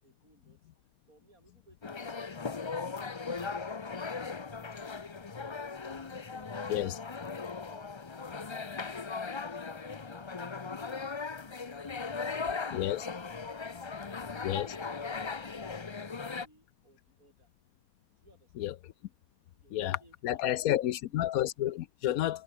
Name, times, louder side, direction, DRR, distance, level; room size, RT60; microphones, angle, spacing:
voice 1, 0.0-2.6 3.0-8.2 14.0-17.5 18.2-18.8 19.5-21.2, right 2 dB, 75° right, 6.6 m, -65 dB
sound 1, 1.8-16.5, left 4 dB, 30° left, 0.5 m, -38 dB
voice 2, 12.7-13.1 14.4-14.7 18.6-18.7 19.7-22.4, left 13 dB, 80° left, 1.1 m, -31 dB
omnidirectional pair, 1.5 m